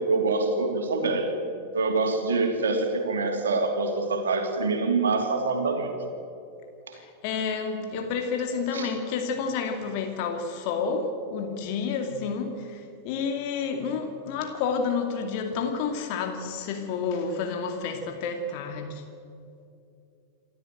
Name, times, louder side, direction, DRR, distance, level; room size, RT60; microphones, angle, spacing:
voice 1, 0.0-1.3 1.7-5.9 6.9-7.0 8.7-8.9, right 3 dB, 65° right, 4 dB, 2.9 m, -25 dB
voice 2, 6.9-19.0, left 5 dB, 45° left, 5 dB, 2.3 m, -30 dB
28.0 x 13.0 x 9.1 m, 2.6 s
figure-of-eight pair, 90°, 0 cm